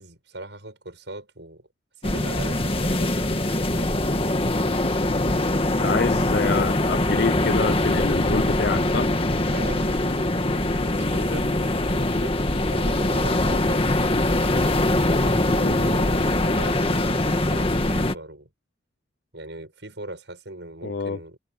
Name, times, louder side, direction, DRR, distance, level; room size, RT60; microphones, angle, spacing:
voice 1, 0.0-1.7 2.0-3.9 9.5-10.2 10.5-12.4 12.7-13.8 15.1-18.5 19.3-21.4, right 2 dB, 75° right, 6.9 m, -39 dB
sound 1, 2.0-18.2, left 1 dB, 30° left, 1.8 m, -22 dB
voice 2, 5.8-9.1 15.6-15.9 20.8-21.2, left 4 dB, 60° left, 0.6 m, -27 dB
head